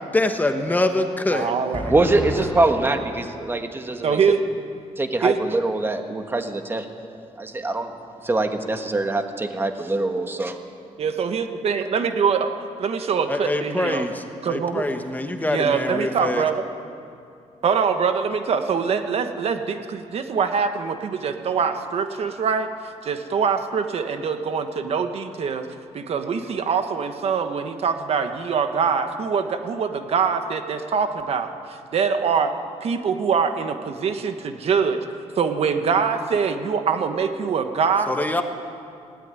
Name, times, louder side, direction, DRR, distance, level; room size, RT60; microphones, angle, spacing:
voice 1, 0.1-2.4 13.3-16.4 38.1-38.4, left 2 dB, 15° left, 6 dB, 1.1 m, -25 dB
voice 2, 1.3-1.9 4.0-4.4 5.2-5.4 11.0-12.5 12.8-14.0 14.4-14.9 15.5-16.6 17.6-25.7 25.9-32.5 32.8-35.0 35.4-38.2, right 6 dB, 55° right, 7 dB, 1.3 m, -24 dB
voice 3, 1.9-4.2 5.0-6.9 7.4-7.9 8.2-10.6, right 2 dB, 20° right, 6 dB, 1.5 m, -23 dB
18.5 x 16.5 x 9.7 m, 2.5 s
cardioid pair, 140°, 12 cm